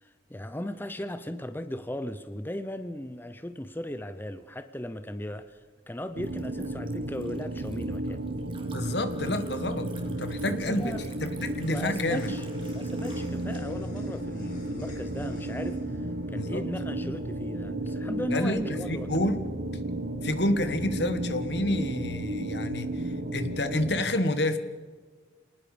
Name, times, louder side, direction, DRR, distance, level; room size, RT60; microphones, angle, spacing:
voice 1, 0.0-5.6 5.9-8.2 10.4-11.0 11.4-12.5 12.7-16.1 16.3-19.3, left 1 dB, 10° left, 10 dB, 0.7 m, -37 dB
Liquid, 5.2-13.6, right 4 dB, 30° right, 3.0 m, -53 dB
sound 1, 6.2-24.0, right 1 dB, 80° right, 1.4 m, -33 dB
voice 2, 8.7-11.0 11.2-12.3 16.3-16.6 18.3-19.5 20.2-24.6, left 1 dB, 70° left, 10 dB, 1.7 m, -29 dB
sound 2, 11.0-17.9, left 4 dB, 45° left, 5.7 m, -58 dB
27.5 x 19.5 x 5.2 m, 1.5 s
head